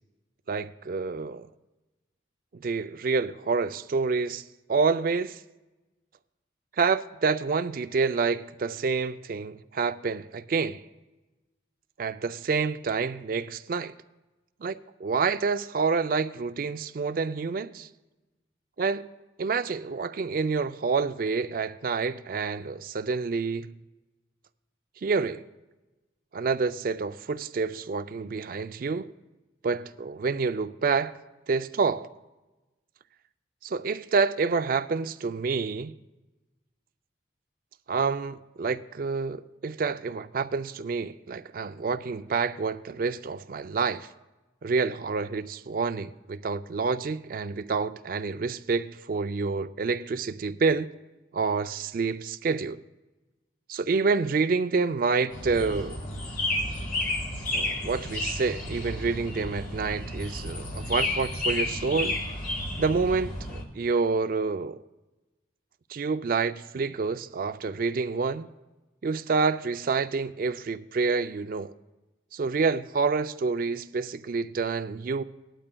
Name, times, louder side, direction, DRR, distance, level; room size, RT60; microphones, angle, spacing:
voice 1, 0.5-1.5 2.5-5.4 6.8-10.8 12.0-13.9 14.6-17.9 18.8-19.1 19.4-23.7 25.0-25.4 26.3-29.1 29.6-31.1 31.5-32.1 33.6-35.9 37.9-44.1 44.6-50.9 51.3-52.8 53.7-56.0 57.5-62.2 62.8-64.8 65.9-68.5 69.0-71.7 72.3-75.2, right 4 dB, 50° right, 0.4 m, -28 dB
sound 1, 55.3-63.6, left 1 dB, 50° left, 1.6 m, -32 dB
18.5 x 12.0 x 2.2 m
head